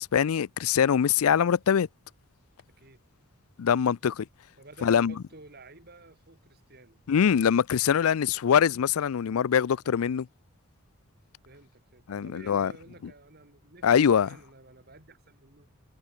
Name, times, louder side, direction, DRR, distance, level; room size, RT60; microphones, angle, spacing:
voice 1, 0.0-1.9 3.6-4.3 4.8-5.1 7.1-10.3 12.1-12.7 13.8-14.3, left 7 dB, 75° left, 0.4 m, -23 dB
voice 2, 2.7-3.0 4.6-7.0 9.9-10.1 11.5-15.7, right 2 dB, 45° right, 4.5 m, -52 dB
head